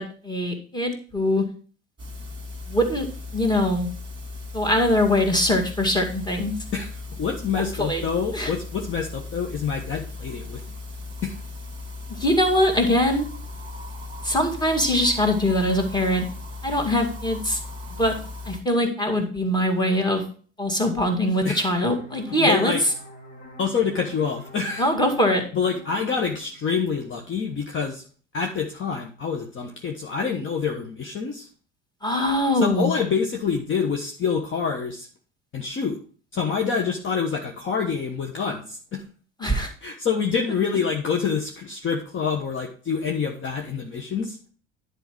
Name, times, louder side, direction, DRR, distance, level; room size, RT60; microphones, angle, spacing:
voice 1, 0.0-1.4 2.7-3.1 3.3-3.9 4.5-6.6 7.8-8.0 8.3-8.5 12.2-13.3 14.2-16.2 16.6-17.6 18.0-18.1 18.5-20.2 20.6-22.7 24.8-25.4 32.0-32.9 39.4-39.7, left 1 dB, 10° left, 3 dB, 2.2 m, -22 dB
sound 1, 2.0-18.6, left 3 dB, 15° right, 2.1 m, -37 dB
voice 2, 6.7-10.6 11.2-11.3 21.4-21.7 22.3-22.8 23.6-24.9 25.5-28.0 28.3-31.5 32.5-35.1 35.5-36.0 36.3-39.0 39.8-44.4, left 6 dB, 35° left, 2 dB, 1.2 m, -26 dB
sound 2, 21.9-27.3, equal, 75° left, 2.5 m, -46 dB
10.5 x 4.9 x 4.6 m, 0.41 s
figure-of-eight pair, 65°, 35 cm